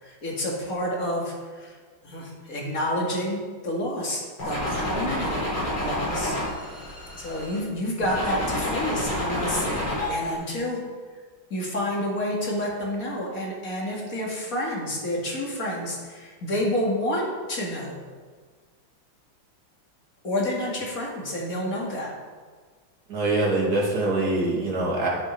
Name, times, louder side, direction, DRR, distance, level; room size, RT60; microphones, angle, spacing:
voice 1, 0.0-1.8 2.0-5.4 5.8-6.4 7.2-10.8 11.5-18.0 20.2-22.1, left 1 dB, 45° left, -2 dB, 2.6 m, -29 dB
sound 1, 4.4-7.6 8.0-10.3, left 1 dB, 60° left, 4.7 m, -29 dB
voice 2, 23.1-25.1, right 2 dB, 50° right, -4 dB, 3.1 m, -24 dB
9.7 x 9.1 x 5.6 m, 1.5 s
omnidirectional pair, 2.1 m